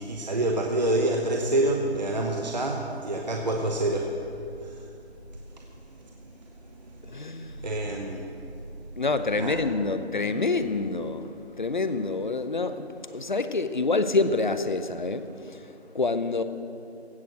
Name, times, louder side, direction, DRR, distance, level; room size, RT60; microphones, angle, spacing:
voice 1, 0.0-4.1 4.6-4.8 7.6-8.2 9.4-9.6, right 1 dB, 40° right, 1 dB, 0.8 m, -27 dB
voice 2, 7.1-7.6 9.0-11.3 11.6-15.2 15.9-16.4, left 3 dB, 45° left, 11 dB, 0.7 m, -27 dB
16.0 x 6.2 x 7.5 m, 2.6 s
figure-of-eight pair, 180°, 33 cm